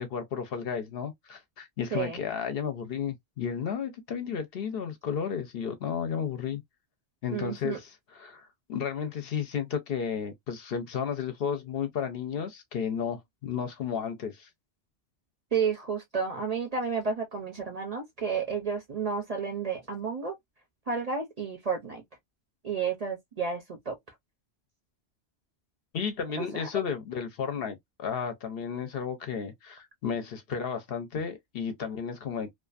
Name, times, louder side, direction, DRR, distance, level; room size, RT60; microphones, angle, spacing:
voice 1, 0.0-6.6 7.2-14.5 25.9-32.5, left 7 dB, 65° left, 0.8 m, -33 dB
voice 2, 1.9-2.2 7.3-7.8 15.5-20.3 20.9-22.0 22.6-24.0 26.4-26.7, right 5 dB, 45° right, 0.6 m, -31 dB
2.5 x 2.4 x 2.4 m
omnidirectional pair, 1.2 m